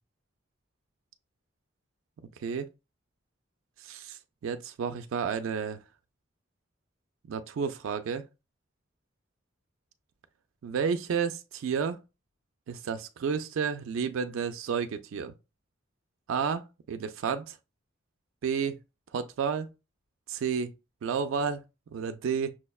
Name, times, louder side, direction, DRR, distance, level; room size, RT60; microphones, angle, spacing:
voice 1, 3.8-5.8 7.3-8.2 10.6-12.0 12.7-15.3 16.3-16.6 16.9-17.6 18.4-18.8 19.1-19.7 20.3-20.7 21.0-21.6 21.9-22.5, right 6 dB, 90° right, 0.3 m, -31 dB
6.0 x 2.1 x 2.3 m
head